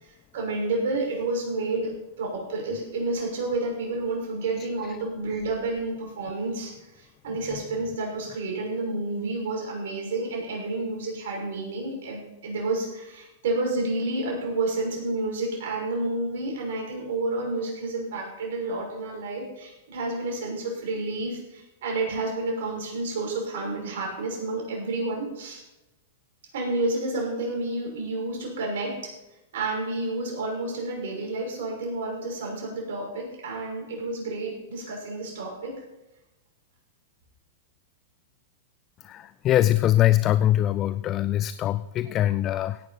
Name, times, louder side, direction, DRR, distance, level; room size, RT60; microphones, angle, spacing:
voice 1, 0.0-25.6 26.5-29.2 29.5-35.7, right 2 dB, 70° right, -1 dB, 6.1 m, -30 dB
voice 2, 39.0-42.8, left 13 dB, 35° left, 16 dB, 0.4 m, -22 dB
16.5 x 10.5 x 4.3 m, 0.98 s
hypercardioid pair, 110°, 0 cm